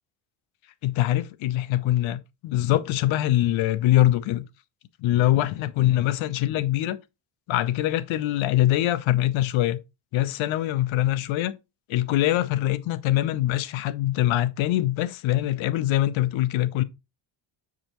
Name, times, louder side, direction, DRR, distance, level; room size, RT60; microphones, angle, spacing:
voice 1, 0.8-4.4 5.0-7.0 7.5-9.8 10.1-11.6 11.9-16.8, left 14 dB, 85° left, 0.8 m, -23 dB
6.7 x 4.9 x 3.0 m
cardioid pair, 150°, 46 cm